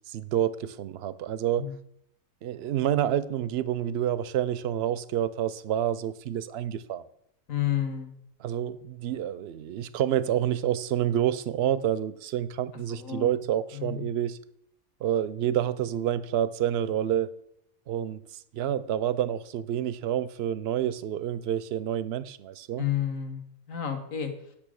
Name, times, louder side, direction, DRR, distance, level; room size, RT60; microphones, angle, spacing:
voice 1, 0.0-1.7 2.4-7.0 8.4-14.4 15.0-17.3 17.9-18.2 18.5-22.8, right 10 dB, 65° right, 0.6 m, -28 dB
voice 2, 7.5-8.1 12.9-13.3 13.7-14.0 22.8-23.4 23.7-24.3, left 10 dB, 70° left, 1.6 m, -30 dB
8.7 x 6.2 x 6.3 m
omnidirectional pair, 1.5 m